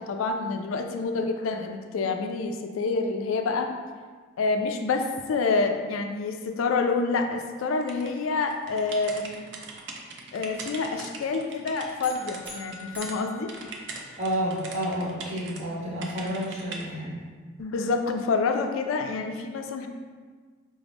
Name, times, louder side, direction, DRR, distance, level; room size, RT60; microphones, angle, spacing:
voice 1, 0.0-3.7 4.4-9.4 10.3-13.5 17.6-19.9, left 4 dB, 85° left, 5 dB, 0.3 m, -27 dB
sound 1, 7.9-13.2 13.5-15.6 16.0-16.8, right 4 dB, 60° right, 0.4 m, -41 dB
sound 2, 12.0-14.5, left 4 dB, 10° right, 0.5 m, -44 dB
voice 2, 14.2-17.2, equal, 35° right, -8 dB, 1.3 m, -30 dB
4.8 x 2.1 x 3.4 m, 1.5 s
head